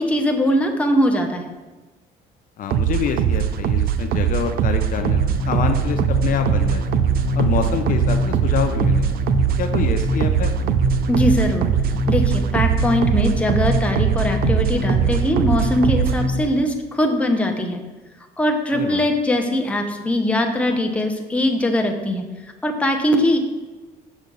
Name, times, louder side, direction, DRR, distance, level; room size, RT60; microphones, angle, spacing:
voice 1, 0.0-1.5 11.1-11.7 12.1-17.8 18.4-22.2 22.6-23.4, left 1 dB, 5° left, 3 dB, 0.8 m, -21 dB
voice 2, 2.6-6.8 7.4-9.1 9.6-10.5 18.7-19.0, left 7 dB, 55° left, 6 dB, 0.6 m, -26 dB
sound 1, 2.7-16.3, right 10 dB, 65° right, 0.4 m, -21 dB
sound 2, 4.9-16.4, left 2 dB, 80° left, 0.9 m, -25 dB
6.5 x 6.2 x 4.0 m, 1.2 s
cardioid pair, 110°, 17 cm